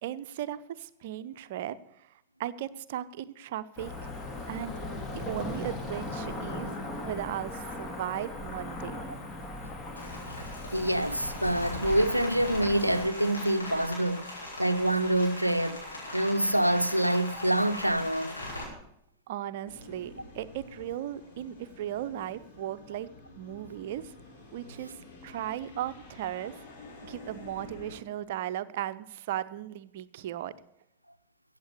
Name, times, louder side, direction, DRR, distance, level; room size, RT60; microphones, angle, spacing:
voice 1, 0.0-2.1 2.4-3.9 4.5-4.7 5.1-9.1 19.3-23.1 23.3-24.1 24.5-25.0 25.2-26.5 27.0-30.6, right 12 dB, 55° right, 0.6 m, -36 dB
Cricket / Motor vehicle (road), 3.8-13.1, left 2 dB, 25° left, 2.3 m, -38 dB
Rain, 10.0-18.6, left 1 dB, 75° left, 5.0 m, -40 dB
voice 2, 10.7-14.3 14.6-15.8 16.1-18.4, right 1 dB, 90° right, 0.6 m, -26 dB
sound 1, 19.7-28.0, left 2 dB, 50° left, 3.6 m, -50 dB
15.0 x 8.2 x 6.7 m
figure-of-eight pair, 90°, 0 cm